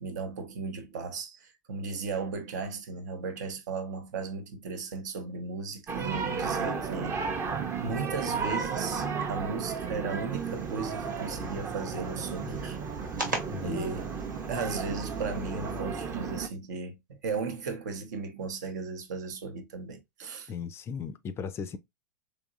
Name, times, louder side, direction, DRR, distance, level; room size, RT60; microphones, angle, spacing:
voice 1, 0.0-7.2 7.8-12.8 13.6-14.1 14.5-20.5, right 4 dB, 65° right, 0.7 m, -36 dB
sound 1, 5.9-16.5, right 5 dB, 25° right, 0.6 m, -33 dB
sound 2, 10.3-15.8, right 1 dB, 85° right, 1.4 m, -41 dB
voice 2, 13.5-14.0 20.5-21.8, left 6 dB, 25° left, 0.4 m, -37 dB
3.5 x 3.1 x 2.4 m
figure-of-eight pair, 95°, 10 cm